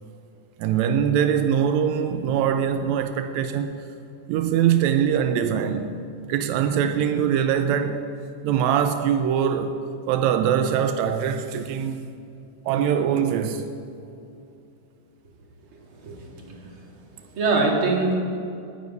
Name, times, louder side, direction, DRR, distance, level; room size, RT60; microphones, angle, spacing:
voice 1, 0.6-3.8 4.3-5.9 6.3-8.0 8.4-9.8 10.1-12.1 12.6-13.6, right 8 dB, 85° right, 1.6 m, -22 dB
voice 2, 16.0-16.7 17.3-18.1, right 3 dB, 45° right, 2.4 m, -23 dB
10.0 x 9.5 x 9.4 m
omnidirectional pair, 3.8 m